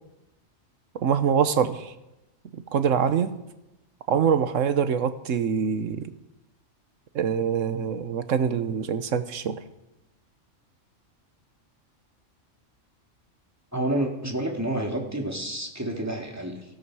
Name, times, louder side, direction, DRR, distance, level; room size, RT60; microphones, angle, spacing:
voice 1, 0.9-1.9 2.5-3.3 4.1-6.1 7.1-9.6, right 7 dB, 90° right, 11 dB, 1.3 m, -24 dB
voice 2, 13.7-16.7, right 1 dB, 10° right, 1 dB, 2.4 m, -29 dB
18.5 x 15.5 x 4.8 m, 0.94 s
omnidirectional pair, 1.3 m